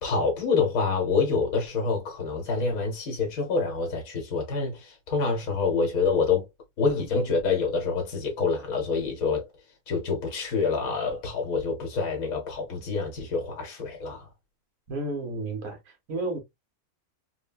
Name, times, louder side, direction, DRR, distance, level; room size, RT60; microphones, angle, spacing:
voice 1, 0.0-6.4 6.8-9.5 9.9-14.3, left 4 dB, 70° left, 1.5 m, -27 dB
voice 2, 14.9-16.4, right 2 dB, 65° right, 1.4 m, -32 dB
3.6 x 2.2 x 2.2 m
omnidirectional pair, 1.6 m